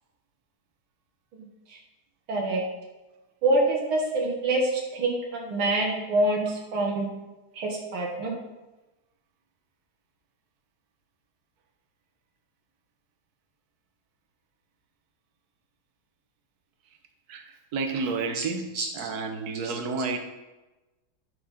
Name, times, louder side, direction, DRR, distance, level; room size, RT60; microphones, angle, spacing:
voice 1, 1.3-1.8 2.3-2.6 3.4-7.1 7.5-8.3 18.3-18.4 18.7-18.9 19.6-19.7, right 2 dB, 85° right, -2 dB, 2.3 m, -26 dB
voice 2, 17.3-18.7 18.9-20.2, right 4 dB, 55° right, 5 dB, 1.3 m, -30 dB
11.0 x 4.4 x 5.7 m, 1.1 s
omnidirectional pair, 2.2 m